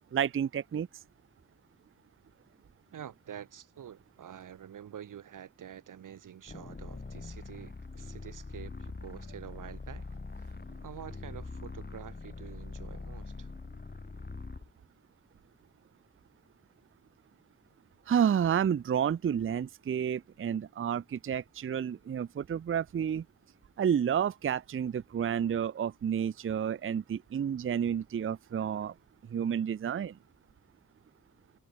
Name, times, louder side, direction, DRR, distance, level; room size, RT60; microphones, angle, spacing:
voice 1, 0.1-0.9 18.1-23.2 23.8-28.9 29.3-30.2, right 8 dB, 40° right, 0.5 m, -30 dB
voice 2, 2.9-10.1 10.4-10.6 10.8-13.5, right 9 dB, 75° right, 0.7 m, -47 dB
sound 1, 6.5-14.7, left 3 dB, 30° left, 1.9 m, -43 dB
wide cardioid pair, 85°, 31 cm